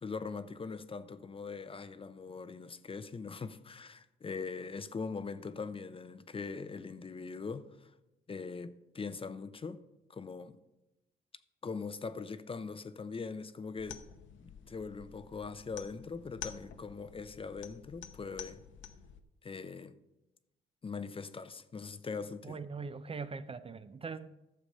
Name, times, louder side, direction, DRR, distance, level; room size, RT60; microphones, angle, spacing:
voice 1, 0.0-7.9 8.3-9.8 10.1-10.6 11.6-14.0 14.4-18.6 19.4-19.9 20.8-22.6, left 4 dB, 30° left, 0.6 m, -41 dB
sound 1, 13.8-19.2, left 8 dB, 75° left, 0.9 m, -49 dB
voice 2, 22.4-24.3, right 4 dB, 30° right, 0.5 m, -41 dB
12.0 x 7.0 x 5.4 m
cardioid pair, 90°, 20 cm